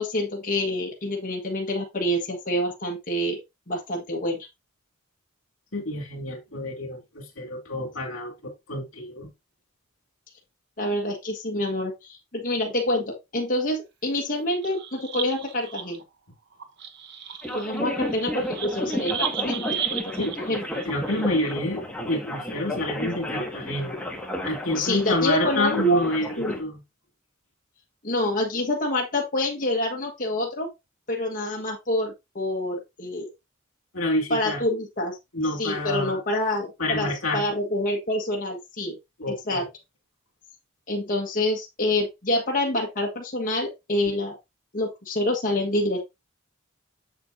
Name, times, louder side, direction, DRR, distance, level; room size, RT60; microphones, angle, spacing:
voice 1, 0.0-3.4 3.7-4.5 10.8-16.0 17.5-20.0 20.5-20.6 24.7-26.0 26.4-26.6 28.0-30.7 31.1-33.3 34.3-35.2 35.5-39.0 39.3-39.6 40.9-44.4 44.7-46.1, left 1 dB, 40° left, 1.5 m, -27 dB
voice 2, 5.7-9.3 20.2-20.3 20.9-24.0 24.4-26.8 33.9-34.6 35.3-36.2 36.8-37.5 39.2-39.7, left 1 dB, 75° left, 2.4 m, -28 dB
sound 1, 14.5-16.0 16.5-21.5, right 8 dB, 55° right, 1.1 m, -35 dB
sound 2, 17.4-26.6, left 1 dB, 5° left, 1.7 m, -32 dB
7.7 x 7.1 x 2.7 m
head